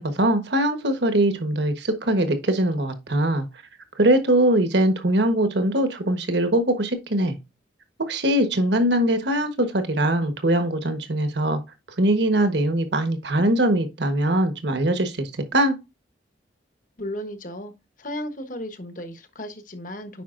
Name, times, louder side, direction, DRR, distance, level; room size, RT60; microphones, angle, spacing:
voice 1, 0.0-3.5 4.0-7.4 8.0-11.6 12.0-15.8, right 1 dB, 65° right, 1.2 m, -22 dB
voice 2, 17.0-17.7 18.0-20.2, left 1 dB, 45° left, 1.1 m, -34 dB
9.2 x 5.2 x 2.5 m
head